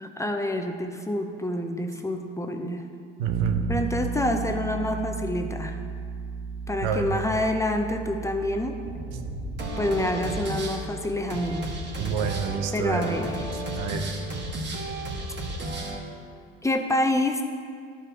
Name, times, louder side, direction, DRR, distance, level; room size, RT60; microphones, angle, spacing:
voice 1, 0.0-2.8 3.7-5.8 6.7-8.8 9.8-11.7 12.7-13.4 16.6-17.4, left 1 dB, 10° left, 5 dB, 0.7 m, -27 dB
voice 2, 3.2-3.7 6.8-7.1 12.0-13.1 13.7-14.1, right 6 dB, 75° right, 6 dB, 0.9 m, -28 dB
Bass guitar, 3.3-13.1, right 6 dB, 55° right, 0.6 m, -35 dB
sound 1, 8.8-16.0, right 1 dB, 35° right, 1.9 m, -33 dB
11.5 x 5.3 x 4.3 m, 2.2 s
supercardioid pair, 85°, 30 cm